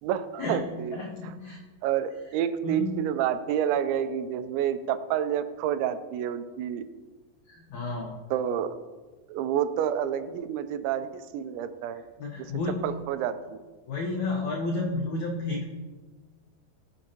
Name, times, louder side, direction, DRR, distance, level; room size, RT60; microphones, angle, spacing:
voice 1, 0.0-1.3 1.8-6.8 8.3-8.7 9.3-12.0 12.4-12.5 12.8-13.6, right 9 dB, 90° right, 11 dB, 3.0 m, -29 dB
voice 2, 0.9-1.6 2.6-2.9 7.5-8.2 12.2-12.8 13.9-15.7, left 3 dB, 80° left, 0 dB, 1.7 m, -31 dB
21.0 x 8.2 x 3.0 m, 1.3 s
omnidirectional pair, 5.1 m